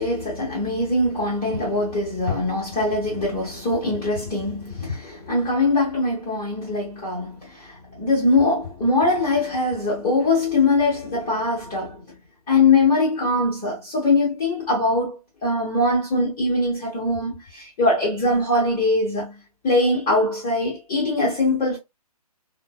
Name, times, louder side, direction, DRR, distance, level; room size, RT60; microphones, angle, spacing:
voice 1, 0.0-12.0 12.5-21.8, left 2 dB, 15° left, 1.1 m, -22 dB
3.7 x 2.2 x 2.2 m
figure-of-eight pair, 135°, 20 cm